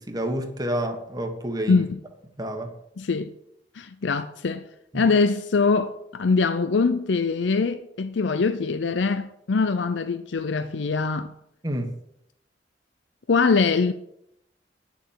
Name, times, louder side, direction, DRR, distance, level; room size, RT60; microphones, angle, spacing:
voice 1, 0.0-1.8 2.4-2.7 4.9-5.0 11.6-11.9, equal, 20° right, 1.4 m, -29 dB
voice 2, 1.7-2.0 3.0-3.3 3.7-4.6 4.9-11.3 13.3-13.9, left 4 dB, 80° left, 0.6 m, -23 dB
10.5 x 7.1 x 7.4 m
head